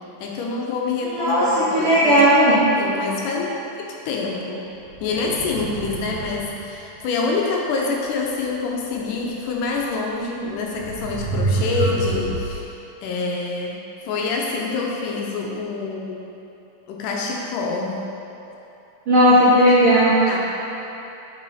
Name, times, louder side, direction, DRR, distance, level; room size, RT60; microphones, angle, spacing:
voice 1, 0.2-4.6 5.0-12.7 13.0-13.8 14.0-16.2 16.9-18.0 19.3-19.7 20.1-20.4, left 4 dB, 85° left, -1 dB, 1.9 m, -26 dB
voice 2, 1.0-2.6 19.1-20.4, equal, 90° right, -11 dB, 1.2 m, -16 dB
sound 1, 4.9-6.7 9.7-9.8 10.7-12.6, right 3 dB, 70° right, 2.1 m, -27 dB
7.1 x 5.5 x 4.1 m, 3.0 s
omnidirectional pair, 4.3 m